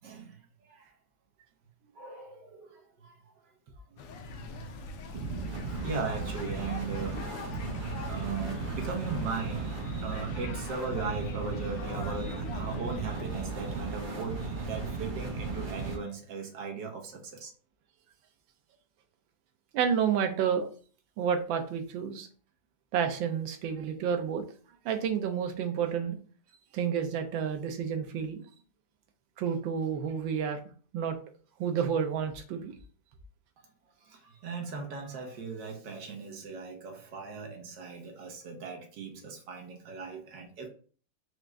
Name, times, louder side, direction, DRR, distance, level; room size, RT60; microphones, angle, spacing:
voice 1, 0.0-0.9 1.8-4.1 4.3-4.9 5.3-7.4 7.8-17.5 34.0-40.7, right 4 dB, 70° right, 1.5 m, -39 dB
sound 1, 4.0-13.2, left 3 dB, 90° left, 0.7 m, -43 dB
sound 2, 5.1-16.0, right 4 dB, 45° right, 0.6 m, -36 dB
voice 2, 19.7-20.7 21.2-22.3 22.9-24.4 24.8-26.2 26.7-28.4 29.4-30.6 30.9-31.2 31.6-32.7, right 7 dB, 85° right, 1.4 m, -30 dB
4.9 x 2.5 x 3.2 m
omnidirectional pair, 2.0 m